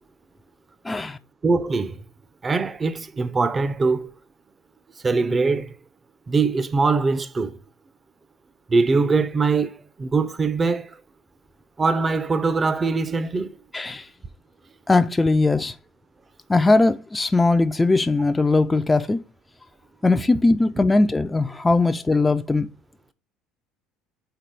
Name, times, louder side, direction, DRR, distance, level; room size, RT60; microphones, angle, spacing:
voice 1, 0.8-1.2 13.7-14.1 14.9-15.8 16.5-19.2 20.0-22.7, left 3 dB, 15° left, 0.4 m, -20 dB
voice 2, 1.4-2.0 2.4-4.1 5.0-5.7 6.3-7.6 8.7-9.7 10.0-10.9 11.8-13.5, right 4 dB, 30° right, 0.6 m, -22 dB
4.5 x 4.1 x 5.2 m
hypercardioid pair, 65°, 0 cm